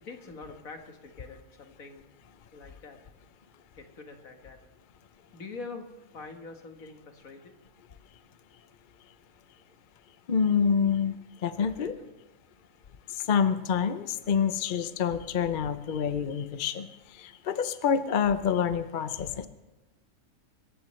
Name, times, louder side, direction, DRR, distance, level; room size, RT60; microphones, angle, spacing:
voice 1, 0.0-2.0 2.5-3.0 3.7-4.6 5.3-5.8 6.1-7.5 11.6-12.1, left 4 dB, 75° left, 5 dB, 1.9 m, -44 dB
voice 2, 10.3-11.1 11.4-11.9 13.3-16.9 17.2-19.5, left 7 dB, 45° left, 11 dB, 0.7 m, -27 dB
26.0 x 14.5 x 3.2 m, 1.1 s
omnidirectional pair, 1.5 m